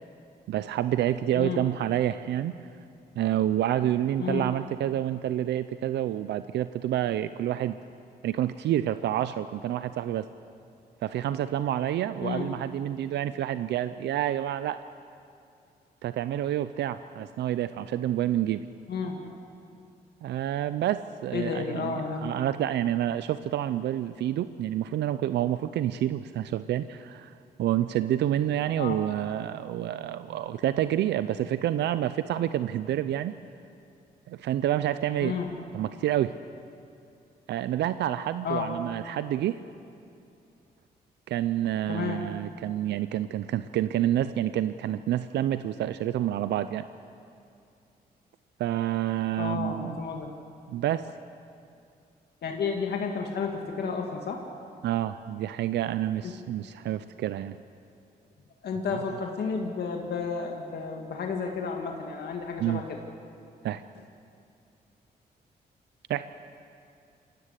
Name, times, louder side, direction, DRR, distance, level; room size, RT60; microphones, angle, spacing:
voice 1, 0.5-2.5 3.2-7.8 8.2-10.3 11.0-14.8 16.0-18.6 20.2-33.3 34.3-35.4 35.7-36.3 37.5-39.6 41.3-46.8 48.6-50.0 50.7-51.1 54.8-57.6 62.6-62.8 63.6-63.8 66.1-66.2, right 12 dB, 85° right, 13 dB, 0.5 m, -28 dB
voice 2, 18.9-19.2 21.3-22.3 28.8-29.0 35.2-35.5 38.4-38.8 41.9-42.3 49.4-50.3 52.4-54.4 56.2-56.3 58.6-63.0, left 5 dB, 70° left, 2 dB, 2.0 m, -32 dB
21.5 x 16.5 x 8.2 m, 2.5 s
cardioid pair, 80°, 17 cm